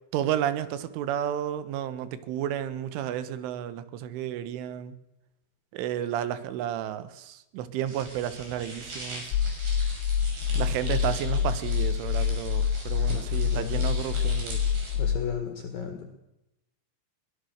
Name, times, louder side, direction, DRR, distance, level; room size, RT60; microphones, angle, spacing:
voice 1, 0.1-5.0 5.7-9.4 10.6-14.6, right 10 dB, 90° right, 13 dB, 3.7 m, -32 dB
sound 1, 7.9-15.0, right 2 dB, 50° right, 7.8 m, -41 dB
sound 2, 9.3-15.2, left 7 dB, 80° left, 3.3 m, -26 dB
voice 2, 15.0-16.1, left 7 dB, 55° left, 5 dB, 3.2 m, -34 dB
23.0 x 18.0 x 6.5 m, 0.90 s
omnidirectional pair, 5.4 m